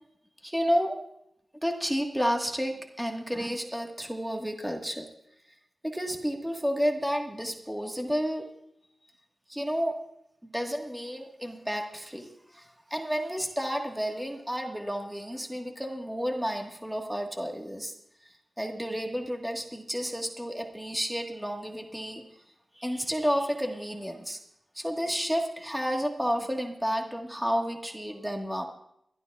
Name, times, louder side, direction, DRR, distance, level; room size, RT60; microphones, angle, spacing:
voice 1, 0.4-1.0 1.6-5.1 5.8-8.5 9.5-10.0 10.4-17.9 18.2-22.2 22.8-24.4 24.7-28.7, equal, 5° right, 2 dB, 1.4 m, -31 dB
28.5 x 12.5 x 2.3 m, 0.77 s
wide cardioid pair, 125°, 0 cm